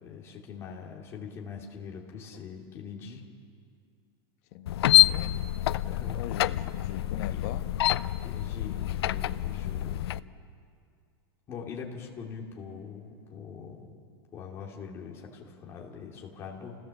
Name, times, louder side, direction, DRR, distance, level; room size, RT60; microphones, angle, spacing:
voice 1, 0.0-3.2 5.8-6.2 8.2-10.0 11.5-13.9 14.3-16.8, left 6 dB, 20° left, -1 dB, 2.6 m, -42 dB
voice 2, 4.5-5.4 6.1-7.7, left 10 dB, 40° left, 8 dB, 1.1 m, -40 dB
sound 1, 4.7-10.2, left 14 dB, 75° left, 0.6 m, -26 dB
29.0 x 16.5 x 7.2 m, 2.4 s
supercardioid pair, 175°, 13 cm